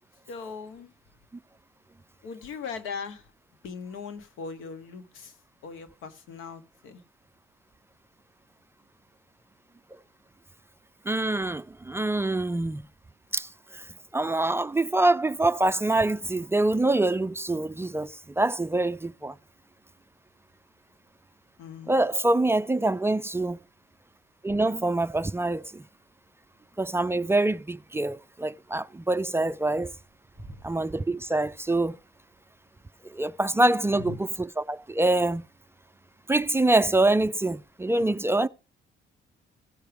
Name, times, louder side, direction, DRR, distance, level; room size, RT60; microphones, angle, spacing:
voice 1, 0.3-0.9 2.2-3.3 3.6-5.4 5.6-7.0 21.6-22.0 30.4-30.6 33.9-34.2, left 5 dB, 90° left, 1.3 m, -39 dB
voice 2, 11.1-12.8 13.3-13.5 13.7-13.8 14.1-19.3 21.9-23.6 24.4-25.8 26.8-29.9 30.6-32.0 33.1-35.5 36.3-38.5, right 2 dB, 10° right, 0.4 m, -25 dB
16.0 x 5.9 x 3.4 m
cardioid pair, 90°, 20 cm